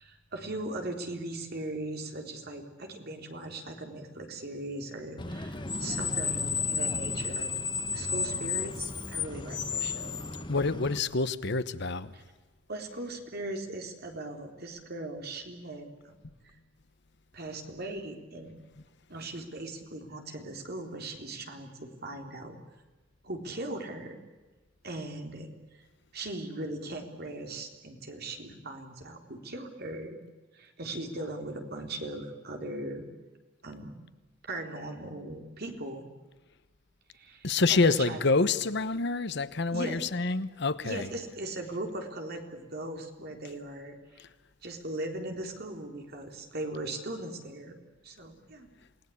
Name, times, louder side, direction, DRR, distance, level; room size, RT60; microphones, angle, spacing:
voice 1, 0.0-7.5 7.9-10.3 12.1-12.2 12.7-16.2 16.4-16.5 17.3-18.5 19.1-22.6 23.2-24.2 24.8-25.5 26.1-30.2 30.5-33.0 33.6-34.0 34.4-36.1 37.1-38.2 39.7-40.1 40.8-44.0 44.6-47.8 48.0-48.7, right 2 dB, 50° right, 3.7 m, -39 dB
Screech, 5.2-11.0, left 5 dB, 25° left, 1.4 m, -32 dB
voice 2, 10.5-12.1 37.4-41.1 44.2-44.3, left 3 dB, 60° left, 1.0 m, -27 dB
28.5 x 19.0 x 8.6 m
head